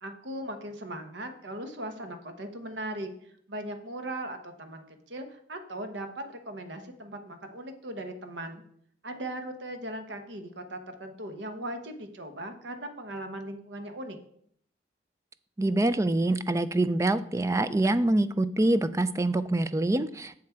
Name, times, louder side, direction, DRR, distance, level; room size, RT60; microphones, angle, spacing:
voice 1, 0.0-3.1 3.5-8.6 9.0-14.2, right 1 dB, 70° right, 7 dB, 1.1 m, -38 dB
voice 2, 15.6-20.4, right 2 dB, 15° right, 13 dB, 0.3 m, -25 dB
7.6 x 7.3 x 4.5 m, 0.66 s
head